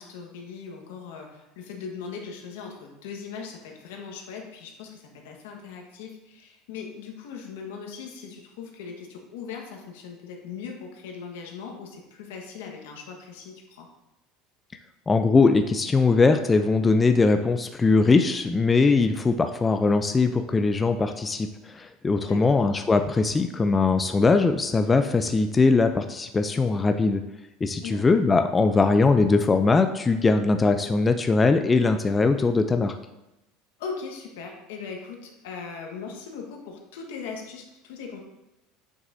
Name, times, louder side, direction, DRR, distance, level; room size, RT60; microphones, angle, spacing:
voice 1, 0.0-13.9 22.2-22.6 27.8-28.1 33.8-38.2, left 5 dB, 80° left, 1 dB, 1.4 m, -39 dB
voice 2, 15.1-27.2 27.6-33.0, left 3 dB, 20° left, 7 dB, 0.4 m, -21 dB
7.9 x 6.1 x 2.7 m, 0.95 s
supercardioid pair, 105°, 0 cm